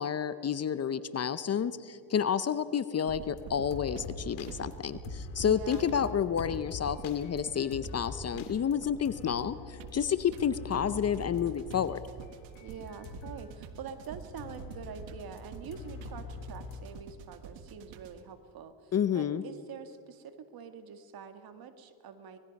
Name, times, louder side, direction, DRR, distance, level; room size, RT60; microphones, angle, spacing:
voice 1, 0.0-12.0 18.9-19.4, left 8 dB, 35° left, 14 dB, 0.8 m, -30 dB
sound 1, 3.1-18.3, right 7 dB, 75° right, 1.8 m, -48 dB
sound 2, 3.2-13.5 13.9-17.0, left 5 dB, 85° left, 2.3 m, -44 dB
voice 2, 5.4-5.8 12.6-22.4, right 6 dB, 50° right, 9 dB, 1.9 m, -45 dB
25.5 x 20.0 x 5.4 m, 2.3 s
supercardioid pair, 90°, 45 cm